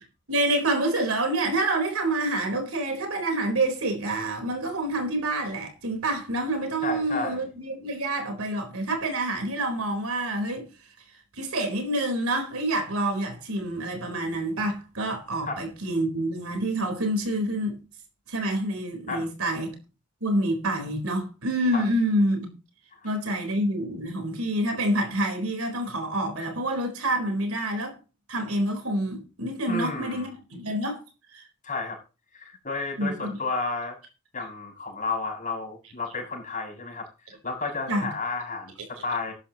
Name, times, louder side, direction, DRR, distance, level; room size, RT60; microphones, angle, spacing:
voice 1, 0.3-10.7 11.4-17.8 18.3-19.8 20.2-22.5 23.0-27.9 28.3-31.0 31.3-31.4 33.0-33.4 37.9-38.1, right 1 dB, 70° right, 4.2 m, -27 dB
voice 2, 6.8-7.4 15.4-15.6 19.1-19.2 21.7-21.8 22.9-23.0 29.7-30.3 31.6-32.0 32.3-34.0 34.3-37.1 37.4-39.3, left 3 dB, 35° left, 6.6 m, -32 dB
14.0 x 13.0 x 3.0 m
head